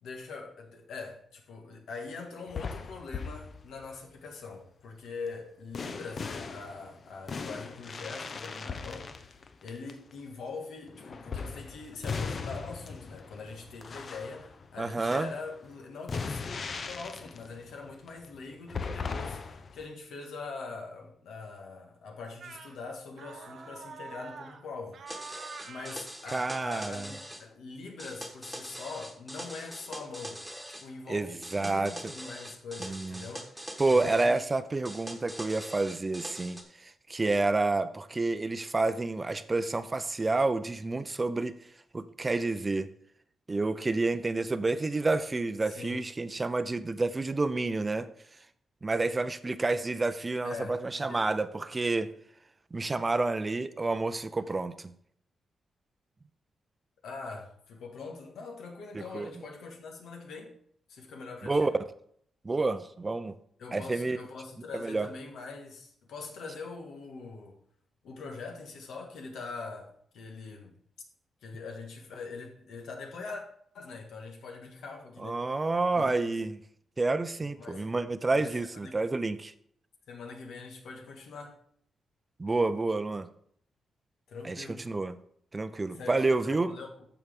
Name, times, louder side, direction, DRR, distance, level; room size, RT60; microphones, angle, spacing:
voice 1, 0.0-30.4 30.8-33.5 33.9-34.4 45.7-46.0 50.4-51.2 57.0-60.6 60.9-61.7 63.6-67.6 68.0-70.7 71.4-73.4 73.7-75.4 75.9-76.3 77.4-77.9 78.3-79.1 80.1-81.6 84.3-84.9 85.9-87.0, left 4 dB, 85° left, 1.7 m, -43 dB
sound 1, 2.5-4.0 5.7-10.1 10.9-19.8, left 5 dB, 50° left, 0.6 m, -39 dB
voice 2, 14.8-15.3 26.3-27.1 31.1-32.1 32.8-33.3 33.8-41.5 41.9-42.9 43.5-48.1 48.8-52.1 52.7-54.9 58.9-59.3 61.4-61.7 62.4-63.4 63.7-64.2 64.7-65.1 75.2-76.6 77.0-79.5 82.4-83.3 84.4-85.1 85.5-86.7, right 3 dB, 25° right, 0.5 m, -29 dB
sound 2, 22.4-22.8 23.2-24.6 24.9-26.0 26.5-26.8, right 5 dB, 60° right, 1.0 m, -45 dB
sound 3, 25.1-27.4 28.0-30.9 31.4-34.3 34.9-36.6, equal, ahead, 1.4 m, -43 dB
14.0 x 4.6 x 3.6 m
cardioid pair, 100°, 0 cm